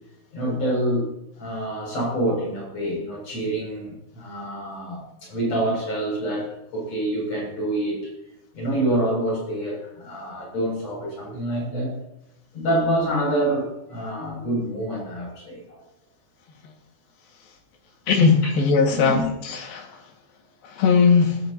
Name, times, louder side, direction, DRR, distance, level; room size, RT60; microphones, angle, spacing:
voice 1, 0.3-1.1 1.4-8.1 8.5-12.0 12.5-15.8 18.4-18.5 19.0-19.3, right 1 dB, 35° left, -2 dB, 8.0 m, -26 dB
voice 2, 18.1-19.2 19.5-19.9 20.7-21.4, left 5 dB, 60° left, 3 dB, 3.5 m, -18 dB
19.5 x 17.0 x 2.9 m, 0.89 s
omnidirectional pair, 5.1 m